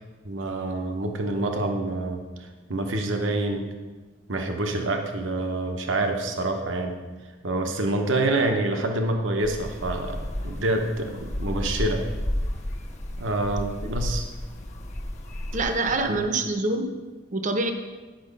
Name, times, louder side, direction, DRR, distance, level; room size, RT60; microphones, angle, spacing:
voice 1, 0.2-3.6 4.3-7.0 7.4-12.0 13.2-14.2 16.1-16.2, right 2 dB, 70° right, 3 dB, 0.9 m, -27 dB
sound 1, 9.4-16.3, left 1 dB, 35° left, 1.0 m, -32 dB
voice 2, 15.5-16.8 17.3-17.7, right 2 dB, 40° right, 6 dB, 0.7 m, -25 dB
10.5 x 5.9 x 5.3 m, 1.3 s
head